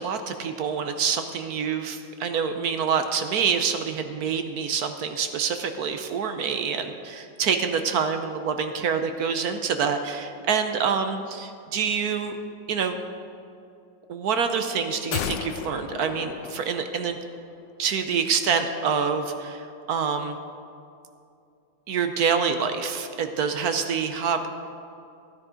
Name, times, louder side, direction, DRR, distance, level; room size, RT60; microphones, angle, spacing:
voice 1, 0.0-12.4 12.7-13.0 14.1-17.2 17.8-20.4 21.9-24.5, right 6 dB, 65° right, 7 dB, 1.0 m, -26 dB
sound 1, 15.1-17.5 17.8-17.9, left 9 dB, 75° left, 1.1 m, -34 dB
15.0 x 9.8 x 5.0 m, 2.5 s
omnidirectional pair, 2.2 m